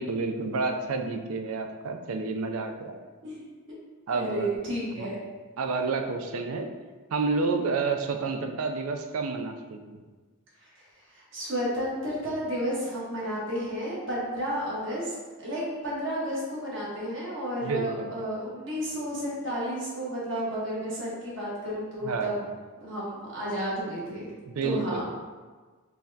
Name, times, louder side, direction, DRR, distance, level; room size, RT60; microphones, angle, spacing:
voice 1, 0.0-3.0 4.1-4.5 5.0-5.1 5.6-6.7 7.1-10.0 17.6-18.1 22.0-22.5 24.5-25.0, right 4 dB, 80° right, 5 dB, 0.4 m, -30 dB
voice 2, 4.1-5.2 5.6-5.7 11.1-15.1 15.4-22.4 22.8-24.3 24.6-25.0, equal, 55° right, -6 dB, 1.4 m, -32 dB
4.6 x 3.3 x 2.7 m, 1.4 s
head